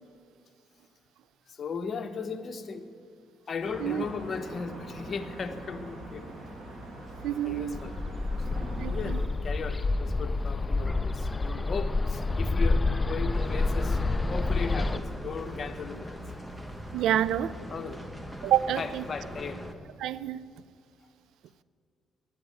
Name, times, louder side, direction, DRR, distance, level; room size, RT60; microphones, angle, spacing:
voice 1, 1.5-2.9 3.5-6.2 7.4-8.0 8.3-14.0 14.3-16.2 17.7-18.0 18.8-19.6, left 5 dB, 45° left, 8 dB, 1.0 m, -37 dB
sound 1, 3.6-9.3, right 1 dB, 35° right, 2.5 m, -42 dB
voice 2, 7.2-7.8 8.8-9.2 16.9-17.5 18.4-19.0 20.0-20.4, right 11 dB, 85° right, 18 dB, 0.4 m, -28 dB
Bird, 7.7-15.0, left 3 dB, 20° left, 0.5 m, -28 dB
sound 2, 13.3-19.7, equal, 5° right, 1.0 m, -41 dB
10.5 x 9.2 x 8.6 m, 2.3 s
cardioid pair, 90°, 0 cm